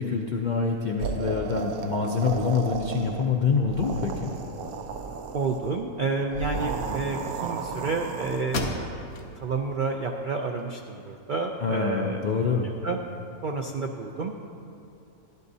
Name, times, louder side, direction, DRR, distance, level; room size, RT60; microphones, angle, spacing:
voice 1, 0.0-4.3 11.6-12.7, left 5 dB, 65° left, 1 dB, 0.4 m, -26 dB
sound 1, 1.0-3.3 3.6-5.7 6.3-8.6, right 5 dB, 85° right, 1.2 m, -33 dB
voice 2, 5.3-8.8 9.4-13.0 13.4-14.3, right 4 dB, 70° right, 3 dB, 0.4 m, -30 dB
sound 2, 8.5-9.3 9.8-9.9 10.4-11.3, left 3 dB, 90° left, 1.3 m, -34 dB
12.0 x 11.5 x 2.7 m, 2.7 s
omnidirectional pair, 1.5 m